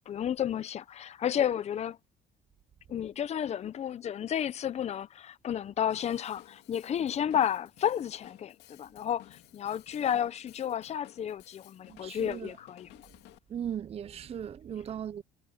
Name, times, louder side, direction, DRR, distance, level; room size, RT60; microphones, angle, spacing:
voice 1, 0.1-2.0 2.9-12.9, left 9 dB, 40° left, 0.6 m, -32 dB
Drum kit / Drum, 5.9-13.4, left 15 dB, 85° left, 2.4 m, -57 dB
voice 2, 11.9-12.5 13.5-15.2, right 9 dB, 35° right, 0.6 m, -38 dB
cardioid pair, 110°, 17 cm